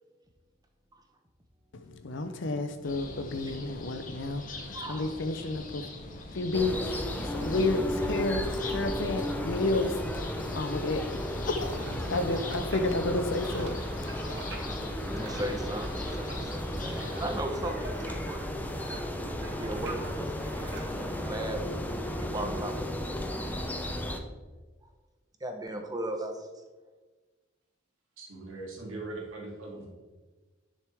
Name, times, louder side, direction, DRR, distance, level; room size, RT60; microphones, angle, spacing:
voice 1, 1.7-14.1, left 2 dB, 65° left, 8 dB, 0.6 m, -31 dB
sound 1, 2.8-17.4, left 2 dB, 40° left, 1.1 m, -42 dB
voice 2, 4.7-5.1 15.1-18.4 19.4-23.5 25.4-26.6, right 1 dB, 20° right, 4 dB, 0.9 m, -37 dB
sound 2, 6.5-24.2, equal, 10° left, 0.6 m, -34 dB
sound 3, 11.3-21.2, right 3 dB, 60° right, 1.6 m, -46 dB
voice 3, 28.2-29.9, right 2 dB, 85° right, -2 dB, 2.6 m, -40 dB
11.0 x 6.4 x 3.5 m, 1.3 s
head